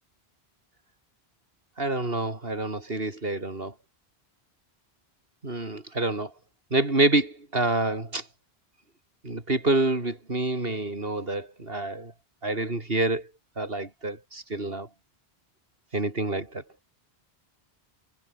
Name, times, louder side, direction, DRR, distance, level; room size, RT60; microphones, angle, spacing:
voice 1, 1.8-3.7 5.4-6.3 6.7-8.3 9.2-12.1 12.4-13.3 13.6-14.9 15.9-16.6, right 2 dB, 65° right, 4.1 m, -27 dB
omnidirectional pair, 1.1 m